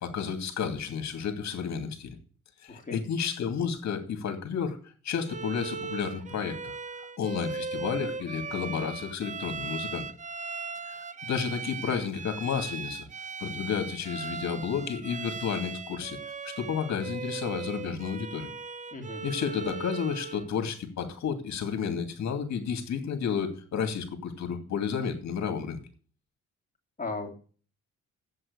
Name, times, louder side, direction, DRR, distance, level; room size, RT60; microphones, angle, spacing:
voice 1, 0.0-2.2 2.6-4.8 5.0-6.7 7.0-10.0 10.9-13.0 13.4-16.2 16.4-18.5 19.2-25.8, left 7 dB, 65° left, 7 dB, 2.5 m, -31 dB
Bowed string instrument, 5.3-20.5, right 5 dB, 25° right, 0.7 m, -38 dB
voice 2, 18.9-19.2 27.0-27.3, left 3 dB, 25° left, 1 dB, 2.9 m, -36 dB
7.9 x 7.7 x 8.1 m, 0.41 s
cardioid pair, 90°, 30 cm